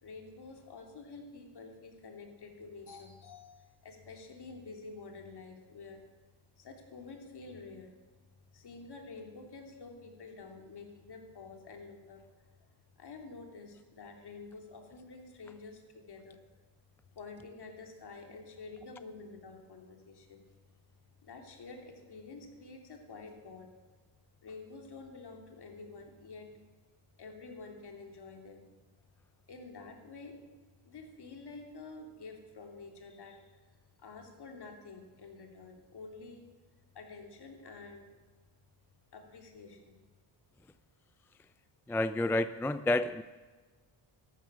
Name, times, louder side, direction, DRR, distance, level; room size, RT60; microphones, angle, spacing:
voice 1, 0.0-6.0 6.6-7.9 8.5-12.2 13.0-16.4 17.1-20.4 21.2-23.7 24.4-26.5 27.2-28.7 29.5-30.4 30.8-33.6 34.0-36.5 36.9-38.1 39.1-40.0, left 3 dB, 55° left, 3 dB, 3.0 m, -49 dB
voice 2, 41.9-43.2, left 2 dB, 5° left, 12 dB, 0.3 m, -29 dB
14.0 x 12.0 x 6.2 m, 1.3 s
cardioid pair, 95°, 47 cm